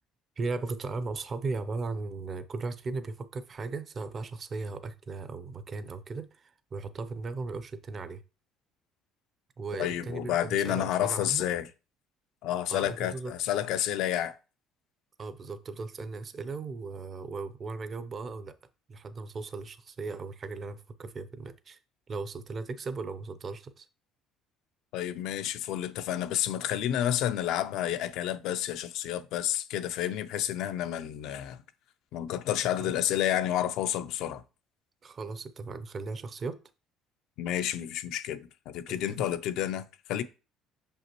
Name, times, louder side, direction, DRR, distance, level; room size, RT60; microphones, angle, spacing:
voice 1, 0.4-8.2 9.6-11.4 12.7-13.3 15.2-18.6 18.9-21.8 22.1-23.9 32.8-32.9 35.0-36.6 38.9-39.0, right 3 dB, 35° right, 0.6 m, -37 dB
voice 2, 9.8-11.7 12.4-14.4 24.9-31.6 32.1-34.4 37.4-40.2, left 11 dB, 70° left, 0.5 m, -30 dB
5.9 x 5.4 x 3.0 m
cardioid pair, 115°, 0 cm